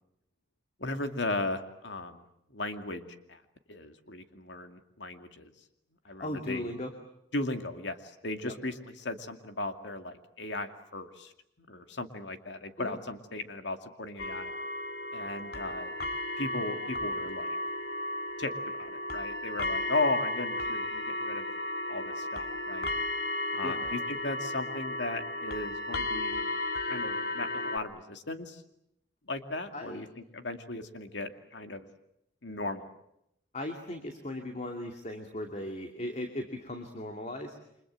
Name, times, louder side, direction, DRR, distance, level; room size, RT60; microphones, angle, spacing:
voice 1, 0.8-3.4 3.7-5.5 6.0-6.7 7.3-11.3 11.7-14.5 15.1-15.9 16.4-17.6 18.4-18.5 18.8-21.5 21.9-22.9 23.5-26.4 26.9-28.6 29.3-30.1 30.3-31.9 32.4-32.9, left 2 dB, 80° left, 7 dB, 2.4 m, -36 dB
voice 2, 6.2-6.9 8.4-8.5 12.8-13.0 23.6-23.8 29.7-30.0 33.5-37.6, left 1 dB, 40° left, 4 dB, 2.5 m, -37 dB
sound 1, 14.2-27.8, left 1 dB, 60° left, 2.3 m, -34 dB
29.5 x 25.5 x 7.6 m, 0.79 s
head